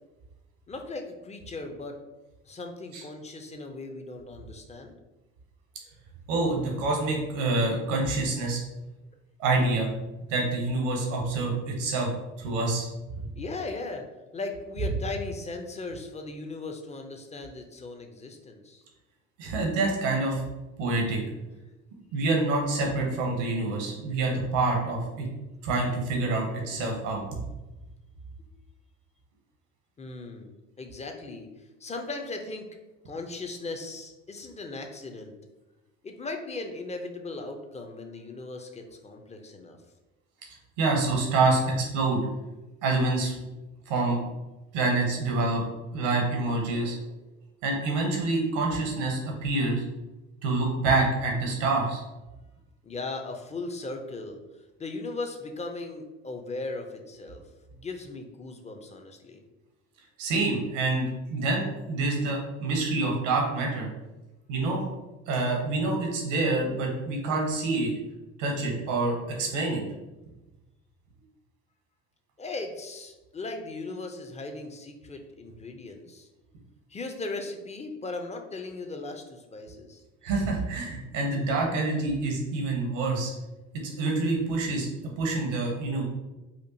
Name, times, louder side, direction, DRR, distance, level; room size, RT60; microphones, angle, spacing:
voice 1, 0.7-2.0 2.4-4.9 13.4-14.1 14.3-18.8 21.6-21.7 28.4-28.5 30.0-32.7 33.1-35.3 36.0-39.8 52.8-57.4 57.7-59.4 72.4-76.3 76.9-80.0, left 3 dB, 20° left, 4 dB, 0.6 m, -38 dB
voice 2, 6.3-8.6 9.4-9.9 10.3-12.9 13.1-13.2 19.4-20.4 20.8-21.2 22.1-25.3 25.6-27.4 40.8-42.2 42.8-43.3 43.9-44.2 44.7-45.6 45.9-47.0 47.6-49.8 50.4-52.0 60.2-63.9 64.5-64.8 65.3-67.9 68.4-69.8 80.2-83.3 83.8-84.9 85.2-86.0, right 3 dB, 80° right, 0 dB, 1.0 m, -27 dB
4.3 x 2.4 x 2.7 m, 1.1 s
hypercardioid pair, 60°, 36 cm